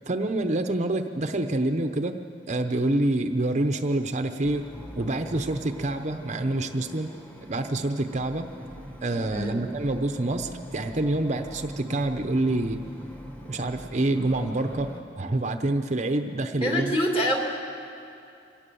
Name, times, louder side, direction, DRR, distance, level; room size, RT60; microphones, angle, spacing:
voice 1, 0.1-2.2 2.5-7.1 7.5-8.5 9.0-12.8 13.5-17.0, right 2 dB, 40° right, 7 dB, 0.7 m, -27 dB
sound 1, 4.4-15.0, equal, 10° left, 1.5 m, -42 dB
voice 2, 16.6-17.4, equal, 30° left, 0 dB, 2.7 m, -25 dB
24.0 x 17.5 x 6.9 m, 2.6 s
head